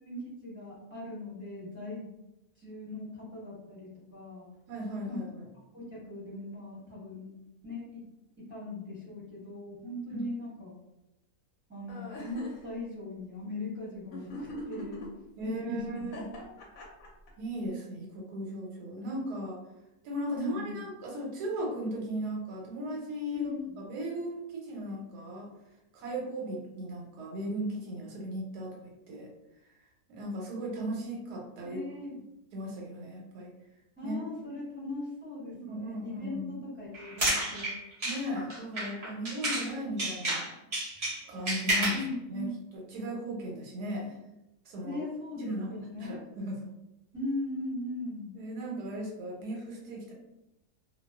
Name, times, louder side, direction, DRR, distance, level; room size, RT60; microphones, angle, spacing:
voice 1, 0.0-2.1 2.6-4.5 5.1-5.2 5.7-7.3 7.6-8.0 8.4-10.7 11.7-15.0 15.4-16.0 20.3-20.8 23.3-23.7 31.6-32.1 34.0-37.7 41.9-42.5 44.8-46.2 47.1-48.3, left 1 dB, 10° right, -9 dB, 0.8 m, -39 dB
voice 2, 4.7-5.5 10.1-10.3 15.4-16.3 17.4-19.6 20.0-25.5 25.9-29.3 30.1-31.8 32.5-33.5 34.0-34.3 35.5-36.5 38.0-40.5 41.3-44.2 44.7-45.0 45.4-46.7 48.3-50.1, equal, 85° right, -1 dB, 1.2 m, -37 dB
sound 1, 11.9-12.6 14.1-15.1 16.0-17.3, left 2 dB, 70° left, 0.9 m, -42 dB
sound 2, 36.9-39.7 40.0-42.1, right 1 dB, 55° right, 0.4 m, -31 dB
2.4 x 2.3 x 2.2 m, 0.91 s
omnidirectional pair, 1.7 m